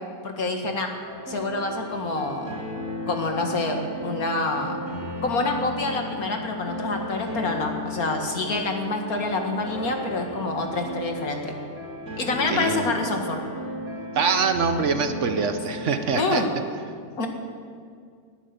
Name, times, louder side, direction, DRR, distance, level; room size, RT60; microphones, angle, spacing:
voice 1, 0.2-0.9 1.3-2.5 3.1-4.8 5.2-11.5 12.2-13.4 16.1-16.5 17.2-17.3, left 3 dB, 80° left, 3 dB, 2.3 m, -27 dB
sound 1, 1.1-16.1, left 1 dB, 85° right, 3.7 m, -34 dB
voice 2, 12.5-12.9 14.1-16.4, right 5 dB, 60° right, 8 dB, 1.2 m, -24 dB
19.5 x 10.5 x 6.9 m, 2.2 s
omnidirectional pair, 1.5 m